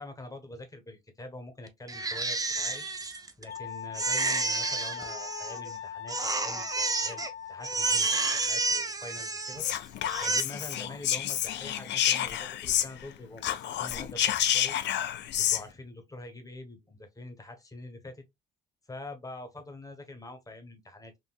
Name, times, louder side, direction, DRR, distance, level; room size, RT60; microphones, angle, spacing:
voice 1, 0.0-2.9 3.4-9.7 10.2-14.8 15.4-18.2 18.9-21.2, left 2 dB, 15° left, 1.0 m, -45 dB
Crying sobbing, 1.9-3.6 3.9-5.7 6.1-7.3 7.6-9.7 10.1-10.4, right 3 dB, 20° right, 0.5 m, -30 dB
Wind instrument woodwind instrument, 3.5-8.5, left 8 dB, 90° left, 1.0 m, -41 dB
Whispering, 9.6-13.1 13.4-15.6, left 11 dB, 65° left, 0.4 m, -29 dB
3.6 x 2.5 x 2.3 m
cardioid pair, 90°, 20 cm